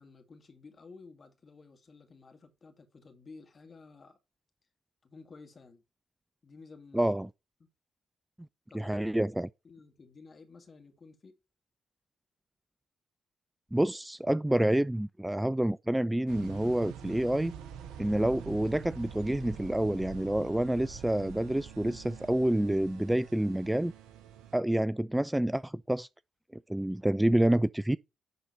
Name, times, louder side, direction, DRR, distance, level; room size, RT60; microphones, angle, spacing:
voice 1, 0.0-4.2 5.0-5.8 6.4-7.1 8.7-8.9 9.6-11.4, left 4 dB, 40° left, 2.2 m, -53 dB
voice 2, 6.9-7.3 8.7-9.5 13.7-17.5 18.0-23.9 24.5-26.1 26.7-28.0, right 1 dB, 10° right, 0.3 m, -28 dB
sound 1, 16.3-24.6, right 8 dB, 70° right, 0.8 m, -45 dB
11.0 x 4.0 x 4.3 m
hypercardioid pair, 40°, 0 cm